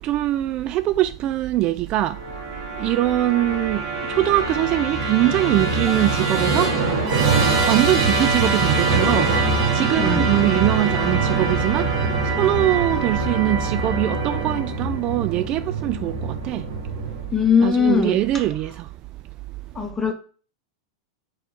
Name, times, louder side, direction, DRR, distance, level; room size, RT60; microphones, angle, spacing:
voice 1, 0.0-2.5 2.8-7.1 7.6-11.9 12.2-16.7 17.6-18.9, right 15 dB, 40° right, 0.3 m, -22 dB
Musical instrument, 2.2-17.5, right 3 dB, 60° right, 2.5 m, -23 dB
voice 2, 17.3-18.2 19.8-20.1, left 6 dB, 10° left, 1.7 m, -19 dB
4.8 x 4.4 x 5.6 m
hypercardioid pair, 100°, 3 cm